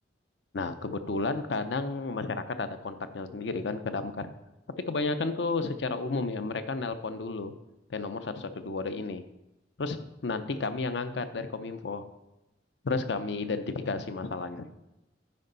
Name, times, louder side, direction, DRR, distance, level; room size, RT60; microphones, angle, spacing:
voice 1, 0.5-4.3 4.9-7.5 7.9-9.2 9.8-10.0 10.2-12.0 12.8-14.8, left 3 dB, 75° left, 10 dB, 0.6 m, -32 dB
9.6 x 5.4 x 3.9 m, 0.96 s
head